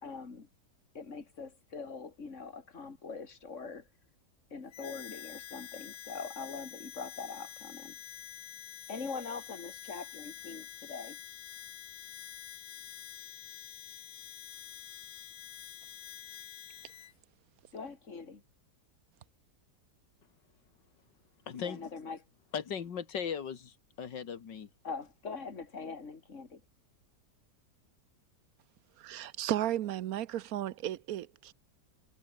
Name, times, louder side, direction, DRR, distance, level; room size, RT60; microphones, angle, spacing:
voice 1, 0.0-0.5 0.9-3.9 4.5-8.0 8.9-11.2 17.7-18.4 21.6-22.2 24.8-26.6, left 4 dB, 45° left, 3.0 m, -43 dB
Harmonica, 4.7-17.1, left 10 dB, 60° left, 1.3 m, -47 dB
voice 2, 21.5-21.9 22.5-24.7, left 7 dB, 85° left, 2.4 m, -38 dB
voice 3, 29.0-31.5, right 12 dB, 65° right, 1.1 m, -34 dB
omnidirectional pair, 1.9 m